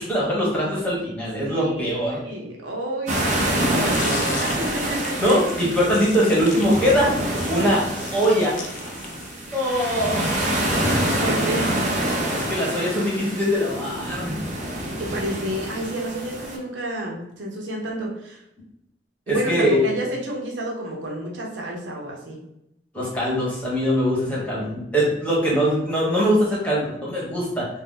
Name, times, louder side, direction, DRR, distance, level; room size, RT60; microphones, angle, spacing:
voice 1, 0.0-2.2 5.2-7.1 7.5-7.8 8.1-8.6 9.5-10.6 12.3-14.4 19.3-19.9 22.9-27.7, equal, 10° left, -6 dB, 1.0 m, -22 dB
voice 2, 1.5-5.2 11.2-11.8 15.0-18.4 19.3-22.4, right 1 dB, 85° right, 0 dB, 0.7 m, -30 dB
sound 1, 3.1-16.6, right 1 dB, 40° right, 0.6 m, -26 dB
sound 2, 3.8-9.7, left 3 dB, 45° left, 0.4 m, -36 dB
2.6 x 2.0 x 3.7 m, 0.83 s
head